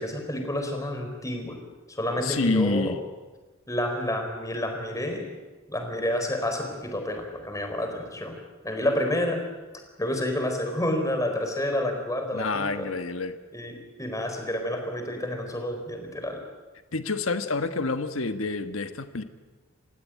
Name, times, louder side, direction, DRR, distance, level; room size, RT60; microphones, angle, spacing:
voice 1, 0.0-1.6 1.9-2.9 3.7-5.3 5.7-8.3 8.6-9.4 10.0-12.9 13.5-16.4, left 1 dB, 15° left, 4 dB, 4.5 m, -29 dB
voice 2, 2.2-3.0 12.3-13.3 16.9-19.2, left 3 dB, 75° left, 8 dB, 1.4 m, -27 dB
29.5 x 16.0 x 9.2 m, 1.2 s
head